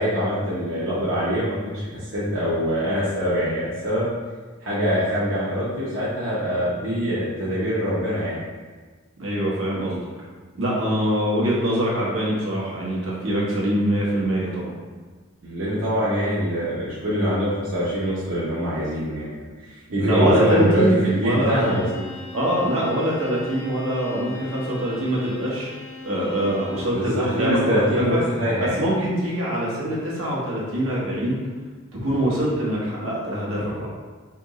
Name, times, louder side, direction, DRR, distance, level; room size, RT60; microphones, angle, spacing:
voice 1, 0.0-4.1 4.6-8.4 15.4-19.3 19.6-22.1 26.9-28.8, equal, 65° right, -10 dB, 0.9 m, -24 dB
voice 2, 9.2-10.0 10.6-14.7 20.0-20.9 21.2-21.8 22.3-25.7 26.0-28.2 28.6-31.4 31.9-33.9, equal, 80° right, -5 dB, 1.2 m, -24 dB
Bowed string instrument, 21.4-27.0, left 2 dB, 25° left, 0.5 m, -39 dB
3.5 x 3.0 x 3.7 m, 1.4 s
head